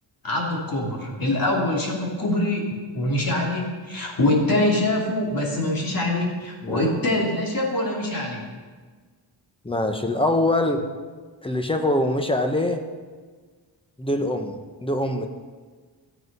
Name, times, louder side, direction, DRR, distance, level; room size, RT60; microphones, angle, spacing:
voice 1, 0.2-8.4, left 1 dB, 50° left, -2 dB, 2.7 m, -24 dB
voice 2, 6.6-6.9 9.6-10.8 11.4-12.8 14.0-14.5 14.8-15.3, left 1 dB, 10° left, 5 dB, 0.9 m, -23 dB
13.5 x 7.9 x 5.4 m, 1.5 s
wide cardioid pair, 145°, 45 cm